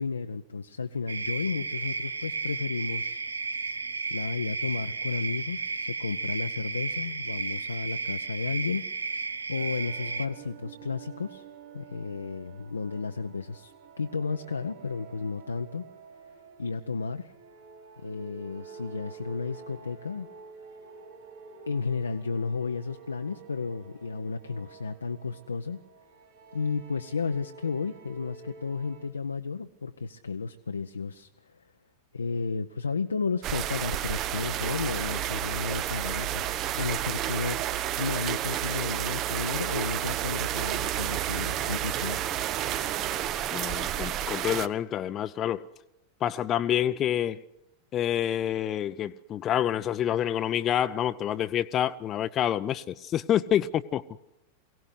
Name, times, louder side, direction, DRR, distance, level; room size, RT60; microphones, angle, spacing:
voice 1, 0.0-3.2 4.1-11.4 11.7-15.9 16.6-17.3 18.0-20.3 21.7-25.8 26.5-31.6 32.1-37.6 38.0-42.2, left 4 dB, 75° left, 0.8 m, -33 dB
sound 1, 1.1-10.3, right 4 dB, 75° right, 0.9 m, -33 dB
sound 2, 9.5-29.1, right 5 dB, 60° right, 5.2 m, -49 dB
sound 3, 33.4-44.7, right 12 dB, 35° right, 0.9 m, -30 dB
voice 2, 43.5-45.7 46.2-47.4 47.9-54.0, left 10 dB, 30° left, 0.7 m, -27 dB
23.5 x 17.5 x 8.2 m
figure-of-eight pair, 90°, 0 cm